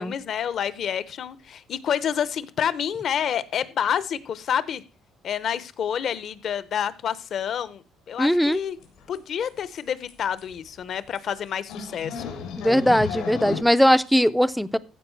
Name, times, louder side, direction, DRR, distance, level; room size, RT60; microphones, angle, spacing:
voice 1, 0.0-4.8 5.2-8.8 9.1-12.3, left 8 dB, 45° left, 16 dB, 0.7 m, -28 dB
voice 2, 8.2-8.6 12.6-14.8, equal, ahead, 15 dB, 0.4 m, -20 dB
sound 1, 8.5-8.6 8.8-9.2 9.5-9.6 9.8-9.9 10.1-10.2 10.4-10.7 11.2-11.3 11.7-13.6, left 5 dB, 85° left, 3.5 m, -33 dB
14.5 x 4.9 x 4.5 m, 0.34 s
cardioid pair, 165°, 0 cm